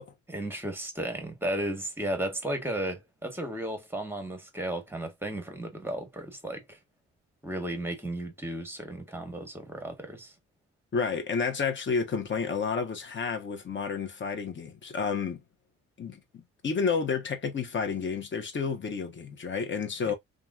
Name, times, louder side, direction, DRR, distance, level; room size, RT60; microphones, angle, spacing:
voice 1, 0.3-6.8 7.4-10.3 20.0-20.1, right 1 dB, 5° right, 1.2 m, -34 dB
voice 2, 10.9-15.4 16.0-20.1, left 5 dB, 40° left, 1.0 m, -30 dB
2.9 x 2.5 x 2.3 m
cardioid pair, 90°, 30 cm